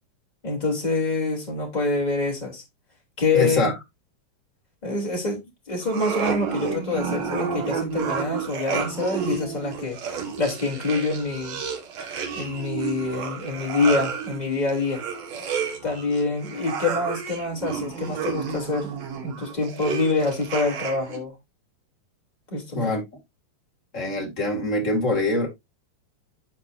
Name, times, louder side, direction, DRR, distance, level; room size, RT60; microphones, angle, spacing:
voice 1, 0.4-2.6 3.2-3.7 4.8-11.6 12.3-15.0 15.8-18.9 19.2-21.3 22.5-22.9, left 3 dB, 10° left, 2.3 m, -26 dB
voice 2, 3.3-3.7 22.7-23.0 23.9-25.5, left 2 dB, 30° left, 1.5 m, -24 dB
sound 1, 5.8-21.2, right 6 dB, 55° right, 2.0 m, -31 dB
12.0 x 4.7 x 2.6 m
omnidirectional pair, 5.0 m